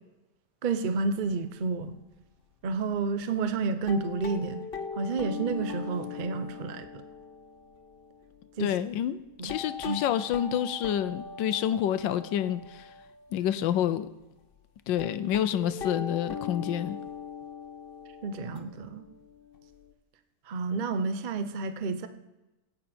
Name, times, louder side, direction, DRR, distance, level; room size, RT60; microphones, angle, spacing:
voice 1, 0.6-2.0 2.6-4.6 5.0-7.0 8.6-8.7 9.4-9.6 9.9-10.0 18.2-19.0 20.5-22.1, right 4 dB, 55° right, 9 dB, 0.5 m, -30 dB
sound 1, 1.0-1.3 1.7-1.8 2.2-2.3 2.8-2.9 3.6-13.6 14.2-14.3 14.5-14.6 15.0-19.9, left 5 dB, 40° left, 0.9 m, -41 dB
voice 2, 8.6-12.9 13.3-14.1 14.9-17.0, left 10 dB, 85° left, 13 dB, 1.3 m, -28 dB
16.5 x 9.1 x 4.3 m, 1.0 s
omnidirectional pair, 2.0 m